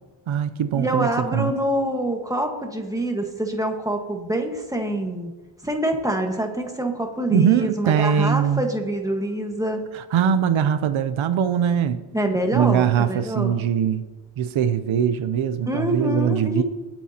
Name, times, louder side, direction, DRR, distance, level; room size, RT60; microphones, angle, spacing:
voice 1, 0.3-1.5 7.3-8.6 9.9-12.0 12.5-14.0 14.4-16.6, right 8 dB, 75° right, 0.7 m, -21 dB
voice 2, 0.8-5.3 5.6-9.8 12.1-13.6 15.7-16.6, right 1 dB, 5° right, 1.4 m, -25 dB
20.0 x 9.0 x 2.9 m
wide cardioid pair, 140°, 48 cm